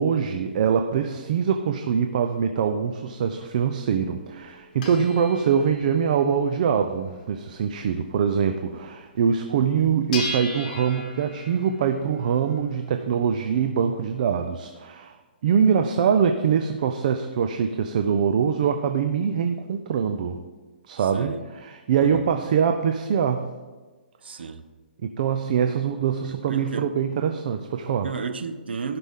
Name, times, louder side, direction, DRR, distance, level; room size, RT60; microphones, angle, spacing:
voice 1, 0.0-15.2 15.4-20.4 20.9-23.4 25.0-28.1, right 7 dB, 45° right, 0.6 m, -23 dB
sound 1, 3.3-8.8 9.2-9.3 9.5-14.4, left 2 dB, 45° left, 1.9 m, -39 dB
voice 2, 24.2-24.6 26.3-26.9 28.0-29.0, right 5 dB, 80° right, 0.9 m, -32 dB
16.5 x 5.9 x 3.7 m
hypercardioid pair, 160°, 6 cm